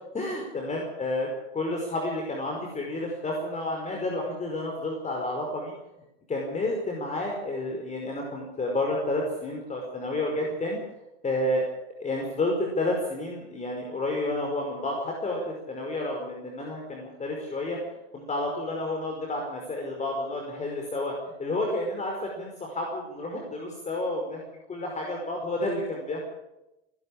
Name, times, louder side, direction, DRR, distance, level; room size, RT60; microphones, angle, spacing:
voice 1, 0.1-5.7 6.3-10.8 11.2-11.6 12.0-17.8 18.1-24.4 24.7-26.2, left 2 dB, 25° left, 0 dB, 5.3 m, -30 dB
26.5 x 11.5 x 8.7 m, 0.93 s
hypercardioid pair, 90°, 30 cm